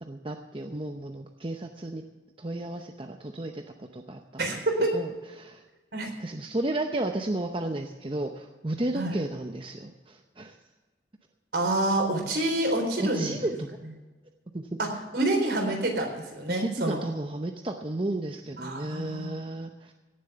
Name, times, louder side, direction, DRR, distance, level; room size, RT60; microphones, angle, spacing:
voice 1, 0.0-2.0 2.4-4.4 4.9-5.6 6.2-10.6 13.0-13.8 14.5-14.8 16.5-19.9, right 1 dB, 30° right, 4 dB, 0.7 m, -33 dB
voice 2, 4.4-4.9 5.9-6.1 8.9-9.1 11.5-13.4 14.8-14.9 15.1-17.0 18.6-19.3, right 1 dB, 65° right, 2 dB, 3.9 m, -27 dB
17.5 x 7.6 x 6.7 m, 1.2 s
head